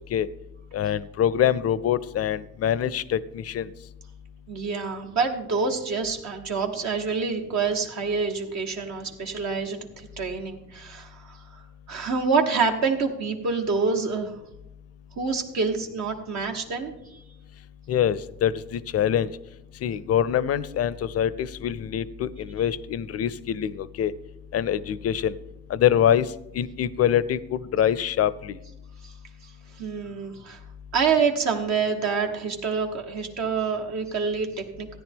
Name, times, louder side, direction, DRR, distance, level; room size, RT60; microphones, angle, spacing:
voice 1, 0.7-3.7 17.9-19.3 19.8-24.1 24.5-25.3 25.7-26.3 26.5-28.6, left 9 dB, 55° left, 19 dB, 0.5 m, -24 dB
voice 2, 4.5-11.6 11.9-14.3 15.2-17.2 29.0-29.1 29.4-29.5 29.8-30.6 30.9-34.9, right 5 dB, 65° right, 2 dB, 1.2 m, -27 dB
14.0 x 9.9 x 3.6 m, 0.91 s
cardioid pair, 90°, 30 cm